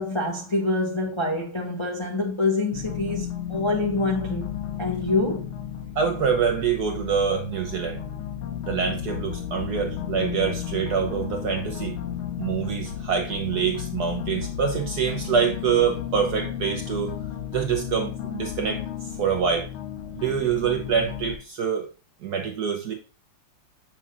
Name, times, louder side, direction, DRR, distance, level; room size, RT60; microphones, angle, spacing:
voice 1, 0.0-4.5 4.8-5.5, left 2 dB, 30° left, 0.5 m, -26 dB
sound 1, 2.7-21.4, left 10 dB, 75° left, 1.6 m, -33 dB
voice 2, 6.0-8.0 8.6-12.0 12.4-17.2 17.5-19.7 20.1-21.9 22.2-22.9, right 7 dB, 65° right, 1.0 m, -25 dB
7.1 x 5.9 x 2.3 m
omnidirectional pair, 2.3 m